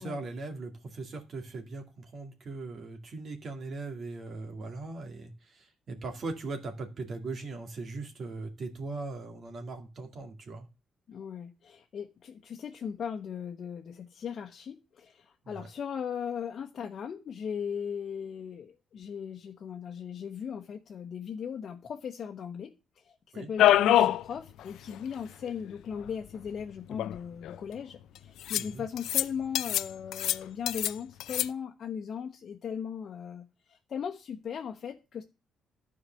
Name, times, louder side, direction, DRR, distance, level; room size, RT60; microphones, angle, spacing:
voice 1, 0.0-10.7 15.4-15.7 23.3-23.5 28.6-28.9, right 3 dB, 50° right, 2.3 m, -39 dB
voice 2, 11.1-22.7 23.0-35.2, left 7 dB, 55° left, 1.1 m, -38 dB
sound 1, 23.6-24.2 24.6-24.7 24.9-25.0 26.1-26.2 26.9-27.5 28.5-28.7 29.0-29.2 29.5-29.9 30.1-30.9 31.2-31.5, left 12 dB, 80° left, 0.4 m, -24 dB
11.0 x 4.9 x 7.5 m
cardioid pair, 90°, 0 cm